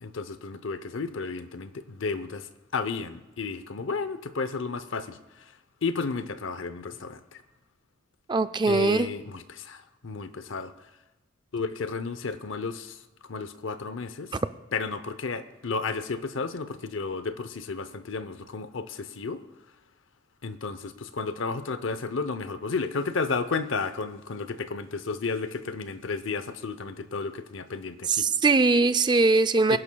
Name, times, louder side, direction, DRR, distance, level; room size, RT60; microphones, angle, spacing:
voice 1, 0.0-5.5 5.8-7.4 8.7-10.7 11.5-13.0 13.3-14.3 14.7-19.4 20.4-28.3 29.7-29.8, left 4 dB, 75° left, 12 dB, 0.7 m, -32 dB
voice 2, 8.3-9.1 28.1-29.8, right 3 dB, 20° right, 13 dB, 0.3 m, -21 dB
25.5 x 11.0 x 2.3 m, 1.0 s
head